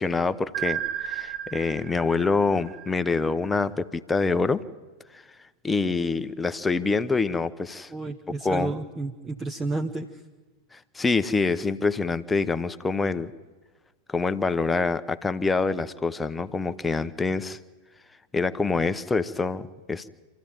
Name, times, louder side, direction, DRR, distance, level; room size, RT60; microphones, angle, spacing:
voice 1, 0.0-4.6 5.1-5.2 5.6-7.9 8.4-8.7 10.7-13.3 14.1-17.6 18.3-20.1, left 4 dB, 10° left, 12 dB, 0.8 m, -26 dB
sound 1, 0.5-3.5, right 11 dB, 50° right, 2.9 m, -34 dB
voice 2, 7.9-10.2, right 3 dB, 20° right, 5 dB, 1.0 m, -31 dB
26.5 x 14.5 x 8.9 m, 1.3 s
figure-of-eight pair, 90°, 0 cm